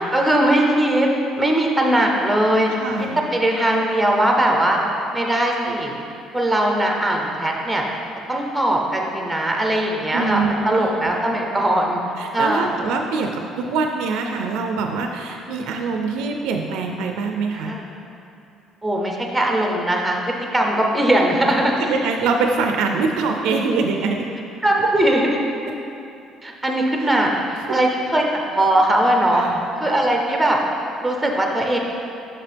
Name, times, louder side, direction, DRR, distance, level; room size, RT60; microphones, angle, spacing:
voice 1, 0.1-1.1 1.4-2.7 3.2-4.8 5.1-5.9 6.3-7.8 8.3-12.0 12.3-12.7 17.6-17.8 18.8-21.9 24.6-25.3 26.4-29.5 29.8-30.6 31.0-31.8, right 1 dB, 5° right, 0 dB, 0.6 m, -20 dB
voice 2, 2.8-3.2 10.1-11.1 12.2-17.7 21.8-24.3 24.8-24.9 25.7-25.8 27.0-27.1 27.7-27.8 29.3-29.6, right 4 dB, 80° right, 3 dB, 0.4 m, -24 dB
5.9 x 5.8 x 3.4 m, 2.7 s
cardioid pair, 150°, 0 cm